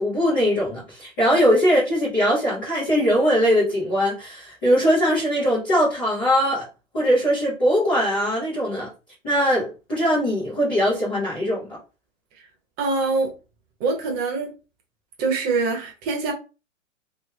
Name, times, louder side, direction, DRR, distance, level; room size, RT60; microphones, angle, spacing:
voice 1, 0.0-6.7 6.9-8.9 9.2-11.8, equal, 5° left, 0.3 m, -21 dB
voice 2, 12.8-13.3 13.8-14.5 15.2-16.3, right 3 dB, 25° right, 0.9 m, -24 dB
3.2 x 3.0 x 3.2 m
hypercardioid pair, 140°, 40 cm